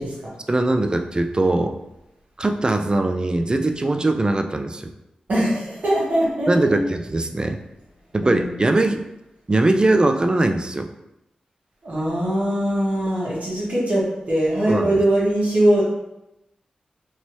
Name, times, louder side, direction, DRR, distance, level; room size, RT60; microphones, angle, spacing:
voice 1, 0.5-1.8 2.4-4.9 6.5-7.6 8.1-9.0 9.5-10.9 14.7-15.0, right 2 dB, 30° right, 6 dB, 0.4 m, -21 dB
voice 2, 5.3-6.8 8.2-8.5 11.8-15.9, right 1 dB, 60° right, -6 dB, 1.5 m, -21 dB
3.0 x 2.6 x 3.0 m, 0.91 s
cardioid pair, 45°, 3 cm